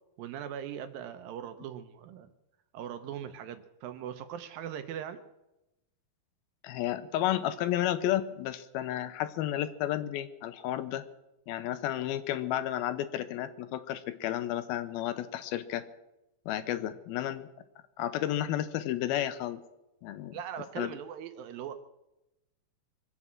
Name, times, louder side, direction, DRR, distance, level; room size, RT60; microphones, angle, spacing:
voice 1, 0.2-2.3 2.7-5.2 16.6-16.8 20.3-21.7, right 9 dB, 75° right, 10 dB, 2.4 m, -40 dB
voice 2, 6.6-11.0 11.5-15.8 16.5-17.5 18.0-19.6 20.0-20.4 20.8-20.9, left 12 dB, 80° left, 12 dB, 2.5 m, -32 dB
23.5 x 8.2 x 7.4 m, 0.94 s
omnidirectional pair, 4.5 m